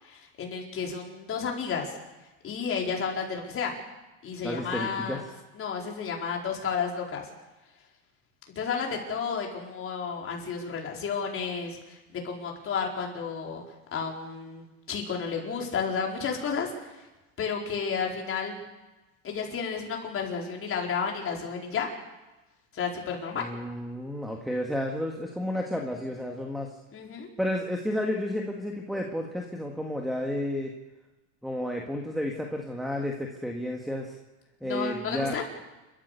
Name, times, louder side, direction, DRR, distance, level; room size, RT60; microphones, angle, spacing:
voice 1, 0.0-1.9 2.4-3.7 4.2-5.2 5.5-7.3 8.5-13.6 13.9-17.0 17.4-18.7 19.2-21.9 22.7-23.5 26.9-27.3 34.6-35.4, left 6 dB, 30° left, 0 dB, 4.8 m, -32 dB
voice 2, 4.4-5.2 23.4-26.8 27.4-30.7 31.4-34.2 34.6-35.4, left 1 dB, ahead, 1 dB, 1.9 m, -31 dB
29.0 x 14.0 x 6.9 m, 1.1 s
supercardioid pair, 135°, 44 cm